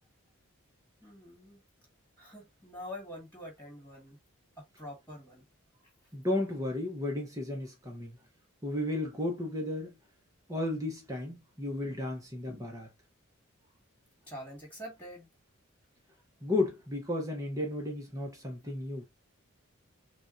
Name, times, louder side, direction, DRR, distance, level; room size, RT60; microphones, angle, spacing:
voice 1, 1.0-1.6 2.2-4.2 4.6-5.5 14.3-15.3, left 1 dB, 10° left, 2.0 m, -45 dB
voice 2, 6.1-8.2 8.6-10.0 10.5-12.9 16.4-19.0, left 2 dB, 15° right, 1.0 m, -33 dB
6.1 x 2.5 x 2.6 m
head